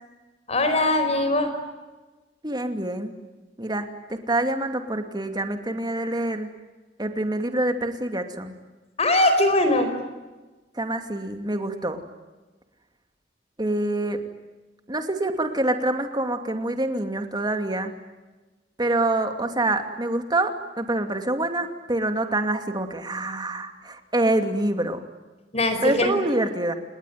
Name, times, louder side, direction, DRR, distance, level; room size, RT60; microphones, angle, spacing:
voice 1, 0.5-1.5 9.0-9.9 25.5-26.1, left 1 dB, 35° left, 8 dB, 4.8 m, -21 dB
voice 2, 2.4-3.1 3.6-6.5 7.0-8.5 10.8-12.0 13.6-14.2 14.9-17.9 18.8-25.0 25.8-26.8, right 1 dB, 25° right, 6 dB, 2.6 m, -26 dB
30.0 x 20.0 x 9.4 m, 1.2 s
head